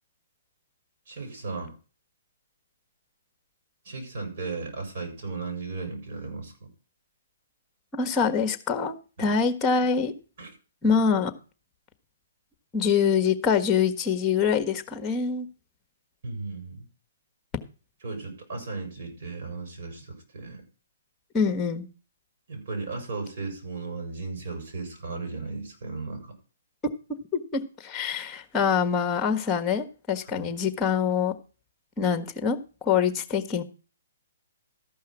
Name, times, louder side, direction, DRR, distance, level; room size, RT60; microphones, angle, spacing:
voice 1, 1.1-1.7 3.8-6.5 9.2-9.3 10.4-10.5 10.8-11.0 16.2-16.9 18.0-20.6 22.5-26.3 30.3-30.5, right 3 dB, 60° right, 2 dB, 6.0 m, -35 dB
voice 2, 7.9-10.1 10.8-11.3 12.7-15.5 21.3-21.9 26.8-31.3 32.0-33.6, left 6 dB, 15° left, 9 dB, 1.4 m, -25 dB
13.5 x 5.6 x 6.0 m, 0.36 s
hypercardioid pair, 135°, 0 cm